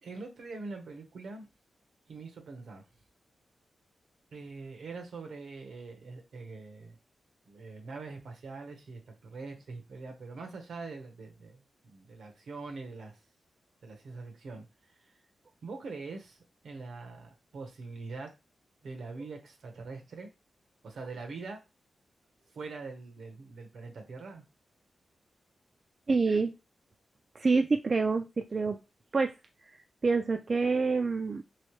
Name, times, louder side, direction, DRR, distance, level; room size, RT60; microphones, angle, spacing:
voice 1, 0.0-1.5 2.1-2.8 4.3-7.0 7.5-13.2 13.8-15.0 15.6-16.4 16.6-18.3 18.8-20.3 20.8-21.6 22.5-24.4, right 3 dB, 80° right, 4 dB, 0.9 m, -43 dB
voice 2, 26.1-26.5 27.4-28.3 28.5-28.8 29.1-29.3 30.0-31.4, right 4 dB, 40° right, 5 dB, 0.3 m, -26 dB
3.2 x 3.1 x 3.1 m, 0.26 s
wide cardioid pair, 125°, 0 cm